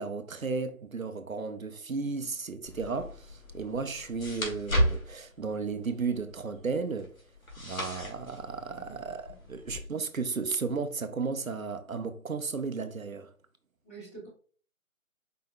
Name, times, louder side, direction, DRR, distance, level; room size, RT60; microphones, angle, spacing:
voice 1, 0.0-7.1 7.6-13.3, right 4 dB, 75° right, 0.7 m, -34 dB
sound 1, 2.7-9.8, equal, 75° left, 1.8 m, -35 dB
voice 2, 13.8-14.3, right 3 dB, 10° left, 1.3 m, -47 dB
5.0 x 4.6 x 2.3 m
figure-of-eight pair, 160°, 42 cm